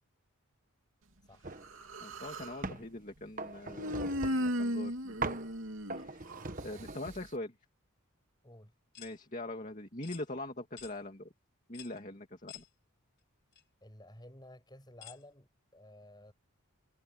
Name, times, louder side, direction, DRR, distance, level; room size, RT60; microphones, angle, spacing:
voice 1, 1.3-1.6 8.4-8.7 13.8-16.3, left 1 dB, 20° left, 7.9 m, -54 dB
sound 1, 1.4-1.7 2.1-2.9 3.4-4.6 5.2-5.5 5.9-7.3, right 3 dB, 35° right, 1.1 m, -40 dB
Human voice, 1.6-2.6 3.8-6.5, equal, 65° right, 3.1 m, -35 dB
voice 2, 2.0-5.4 6.0-6.3 6.6-7.5 9.0-11.3 11.7-12.6, left 1 dB, 35° left, 2.4 m, -43 dB
sound 2, 8.9-9.2 10.0-10.3 10.8-11.0 11.7-12.0 12.5-12.7 13.5-13.6 15.0-15.2, left 11 dB, 50° left, 5.9 m, -50 dB
head